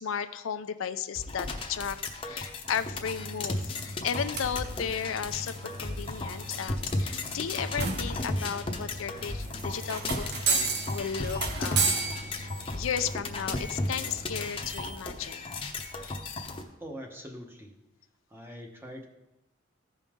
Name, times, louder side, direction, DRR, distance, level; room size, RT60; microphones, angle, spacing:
voice 1, 0.0-2.0 2.2-5.5 5.8-15.5, left 7 dB, 90° left, 10 dB, 0.5 m, -35 dB
sound 1, 1.2-16.6, left 2 dB, 25° left, 0.8 m, -35 dB
sound 2, 2.8-14.8, right 4 dB, 50° right, 0.9 m, -35 dB
voice 2, 16.8-17.7 18.3-19.0, equal, 10° right, 2 dB, 0.9 m, -43 dB
15.0 x 5.3 x 3.6 m, 0.93 s
head